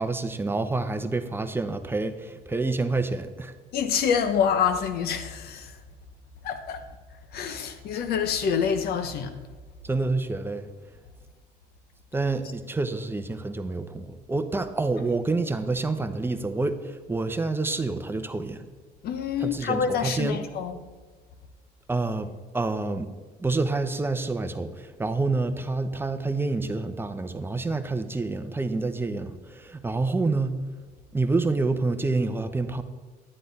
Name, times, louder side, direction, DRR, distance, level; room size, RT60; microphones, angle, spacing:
voice 1, 0.0-3.5 9.8-10.7 12.1-18.7 19.4-20.4 21.9-23.1 23.4-30.6 31.1-32.8, right 3 dB, 15° right, 8 dB, 0.7 m, -28 dB
voice 2, 3.7-5.8 6.4-6.9 7.3-9.3 19.0-20.8, left 7 dB, 65° left, 9 dB, 1.1 m, -26 dB
10.0 x 10.0 x 4.1 m, 1.3 s
cardioid pair, 110°, 17 cm